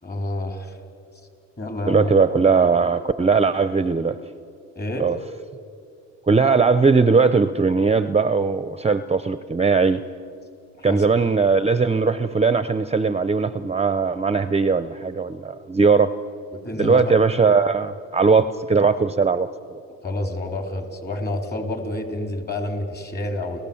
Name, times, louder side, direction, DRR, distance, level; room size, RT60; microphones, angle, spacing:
voice 1, 0.0-0.8 1.6-2.2 4.8-5.1 10.8-11.0 16.5-17.1 20.0-23.6, left 1 dB, 35° left, 4 dB, 3.7 m, -28 dB
voice 2, 1.9-4.2 5.0-5.2 6.3-10.0 10.8-16.1 16.8-19.8, right 4 dB, 20° right, 12 dB, 0.6 m, -19 dB
29.5 x 15.5 x 7.1 m, 2.5 s
cardioid pair, 90°, 30 cm